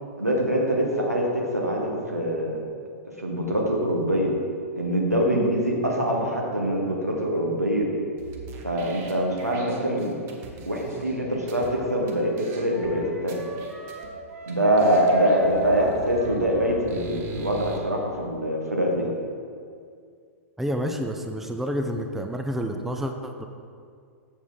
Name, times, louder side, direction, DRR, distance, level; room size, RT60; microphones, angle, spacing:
voice 1, 0.2-2.6 3.2-4.3 4.7-7.9 8.6-10.2 10.7-13.4 14.5-19.1, equal, 85° right, -1 dB, 1.5 m, -24 dB
sound 1, 8.2-11.7 12.1-12.2 12.4-12.9 13.3-14.1 14.5-14.6 14.8-17.8, right 3 dB, 30° right, 1.0 m, -42 dB
sound 2, 11.7-16.9, right 1 dB, 65° right, 1.3 m, -39 dB
voice 2, 20.6-23.5, equal, 5° right, 5 dB, 0.4 m, -29 dB
7.1 x 7.0 x 3.9 m, 2.2 s
figure-of-eight pair, 105°, 8 cm